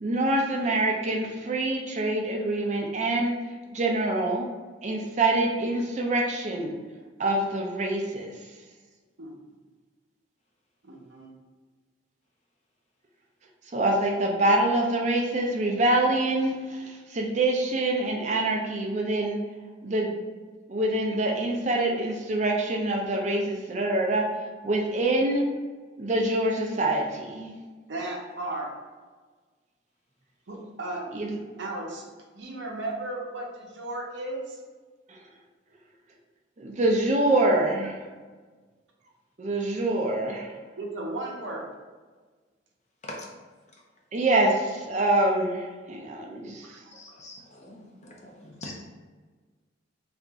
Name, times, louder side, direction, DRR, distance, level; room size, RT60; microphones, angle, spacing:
voice 1, 0.0-3.3 3.7-4.5 4.8-6.8 7.2-8.3 13.7-19.4 19.8-20.2 20.7-24.2 24.6-25.4 26.0-27.5 31.1-31.4 36.6-38.0 39.4-40.5 44.1-46.2, right 2 dB, 40° right, 1 dB, 0.5 m, -25 dB
voice 2, 10.8-11.3 27.9-28.7 30.5-31.0 31.6-32.0 32.3-34.6 40.8-41.7, right 2 dB, 70° right, -1 dB, 0.7 m, -35 dB
voice 3, 46.9-48.7, left 1 dB, 35° left, 0 dB, 0.5 m, -43 dB
2.9 x 2.5 x 3.5 m, 1.4 s
head